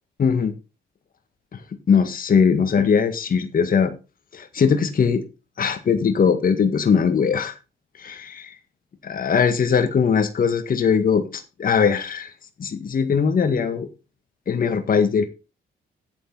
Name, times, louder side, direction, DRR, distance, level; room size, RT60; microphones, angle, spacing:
voice 1, 0.2-0.5 1.5-1.6 1.9-3.9 4.3-5.2 5.6-7.6 8.0-8.5 9.0-12.3 12.6-13.9 14.5-15.3, left 6 dB, 45° left, 1.8 m, -20 dB
11.0 x 8.5 x 4.0 m
cardioid pair, 90°, 20 cm